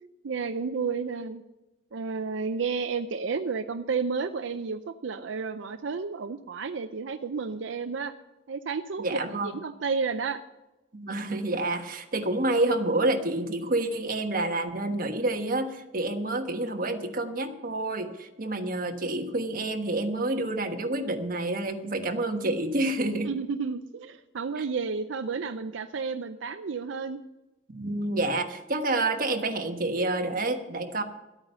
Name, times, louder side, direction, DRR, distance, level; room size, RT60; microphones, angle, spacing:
voice 1, 0.2-1.4 1.9-8.1 8.5-10.4 23.3-27.2, right 5 dB, 80° right, 9 dB, 0.5 m, -31 dB
voice 2, 9.0-9.5 10.9-23.3 24.6-24.7 27.7-31.0, right 2 dB, 50° right, 5 dB, 1.3 m, -28 dB
12.5 x 8.9 x 6.8 m, 1.0 s
head